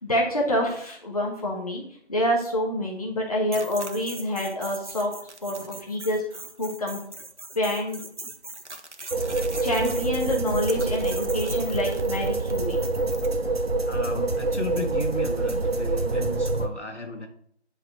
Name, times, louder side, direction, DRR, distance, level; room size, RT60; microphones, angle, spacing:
voice 1, 0.0-1.8 2.1-5.1 5.4-7.0 7.5-8.0 9.6-12.8, left 1 dB, 35° left, -1 dB, 1.4 m, -27 dB
sound 1, 3.5-13.3, right 2 dB, 85° right, 1.3 m, -41 dB
sound 2, 9.1-16.7, right 3 dB, 60° right, 1.0 m, -26 dB
voice 2, 13.9-17.3, left 2 dB, 80° left, 2 dB, 2.1 m, -34 dB
9.6 x 4.9 x 4.4 m, 0.64 s
figure-of-eight pair, 170°, 34 cm